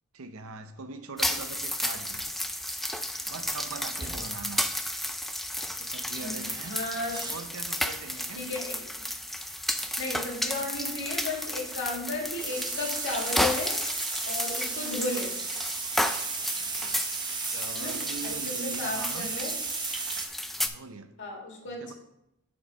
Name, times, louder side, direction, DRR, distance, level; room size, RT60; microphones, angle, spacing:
voice 1, 0.1-2.3 3.3-4.7 5.7-6.8 7.3-8.5 17.5-19.3 20.5-21.1 21.7-21.9, right 4 dB, 75° right, 0.7 m, -41 dB
sound 1, 1.2-20.7, left 1 dB, ahead, 0.3 m, -33 dB
sound 2, 3.4-3.6 4.0-4.5 6.2-7.5 7.9-8.2 9.8-12.0 12.4-20.3, right 4 dB, 20° right, 0.7 m, -36 dB
voice 2, 6.7-7.2 8.3-8.8 10.0-13.8 14.2-15.3 17.7-18.0 18.5-19.5 21.2-21.9, left 2 dB, 60° left, 2.2 m, -34 dB
7.4 x 4.3 x 5.4 m
head